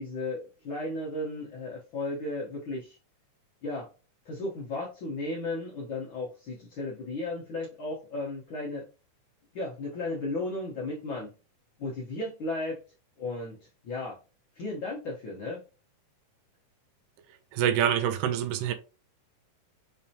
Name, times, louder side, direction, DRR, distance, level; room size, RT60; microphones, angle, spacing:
voice 1, 0.0-3.0 3.6-3.9 4.2-8.8 9.5-11.3 11.8-12.8 13.2-14.2 14.5-15.6, left 2 dB, 80° left, 1.1 m, -35 dB
voice 2, 17.5-18.7, right 9 dB, 80° right, 2.1 m, -26 dB
5.5 x 3.3 x 2.8 m
omnidirectional pair, 3.8 m